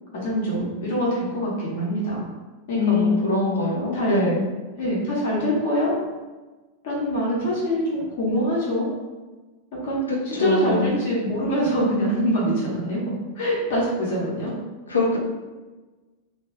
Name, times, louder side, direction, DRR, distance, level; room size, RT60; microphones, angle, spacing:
voice 1, 0.1-2.3 2.7-3.1 3.9-4.2 4.8-6.0 6.8-8.9 9.7-10.0 10.2-14.5, equal, 55° left, -5 dB, 0.9 m, -24 dB
voice 2, 2.7-4.4 10.4-10.9 14.9-15.2, left 2 dB, 75° left, -2 dB, 0.6 m, -22 dB
2.6 x 2.3 x 3.2 m, 1.2 s
figure-of-eight pair, 90°, 0 cm